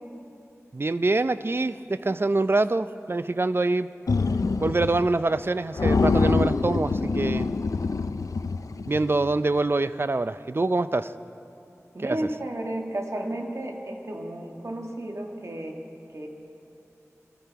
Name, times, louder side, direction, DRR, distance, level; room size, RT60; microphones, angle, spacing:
voice 1, 0.7-3.9 4.6-7.5 8.9-11.1 12.0-12.2, right 2 dB, 45° right, 13 dB, 0.4 m, -25 dB
sound 1, 4.1-5.1 5.4-5.5 5.8-9.2, left 4 dB, 85° left, 0.4 m, -25 dB
voice 2, 11.9-15.8 16.1-16.3, right 1 dB, 60° right, 1 dB, 1.6 m, -33 dB
20.0 x 13.0 x 4.6 m, 2.9 s
wide cardioid pair, 45°, 6 cm